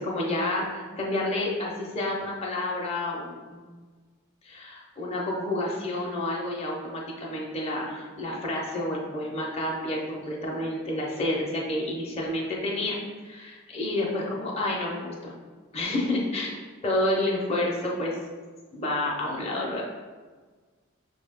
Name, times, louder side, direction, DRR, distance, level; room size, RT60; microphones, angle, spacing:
voice 1, 0.0-3.7 4.4-13.0 13.2-15.3 15.7-16.6 16.8-18.2 18.7-19.8, left 1 dB, 30° left, -3 dB, 0.7 m, -29 dB
5.8 x 2.3 x 3.6 m, 1.4 s
head